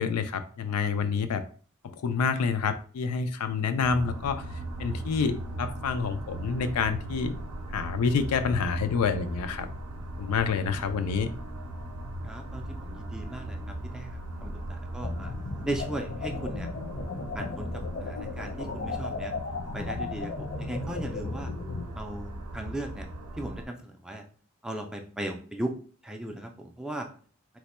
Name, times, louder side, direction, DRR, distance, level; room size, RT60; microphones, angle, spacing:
voice 1, 0.0-1.4 1.8-4.4 4.8-7.3 7.7-9.7 10.2-11.3, left 5 dB, 80° left, 9 dB, 0.4 m, -28 dB
sound 1, 3.8-23.6, right 1 dB, 80° right, 0.5 m, -39 dB
voice 2, 12.2-15.3 15.6-16.7 17.3-17.7 18.0-19.3 19.7-21.5 21.9-23.1 23.4-24.2 24.6-25.7 26.0-27.1, right 1 dB, 5° right, 3 dB, 0.3 m, -37 dB
sound 2, 15.0-21.8, left 3 dB, 55° left, 0.7 m, -35 dB
3.0 x 2.1 x 4.2 m, 0.42 s
head